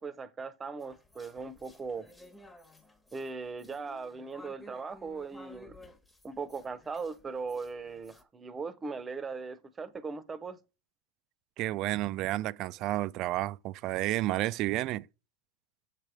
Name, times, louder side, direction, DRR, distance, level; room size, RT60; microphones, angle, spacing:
voice 1, 0.0-2.1 3.1-5.8 6.2-10.6, right 4 dB, 20° right, 0.8 m, -39 dB
sound 1, 0.8-8.2, left 2 dB, 10° left, 1.1 m, -55 dB
voice 2, 11.6-15.1, right 16 dB, 50° right, 0.3 m, -31 dB
7.4 x 3.3 x 4.8 m
hypercardioid pair, 105°, 0 cm